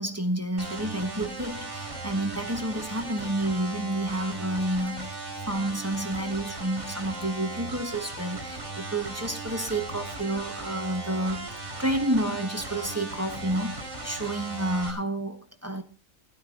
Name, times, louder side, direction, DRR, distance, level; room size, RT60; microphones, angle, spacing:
voice 1, 0.0-5.2 5.5-11.5 11.8-15.8, right 1 dB, 10° right, 1.3 m, -30 dB
sound 1, 0.6-14.9, right 2 dB, 40° right, 4.5 m, -37 dB
16.5 x 12.0 x 3.9 m
omnidirectional pair, 1.4 m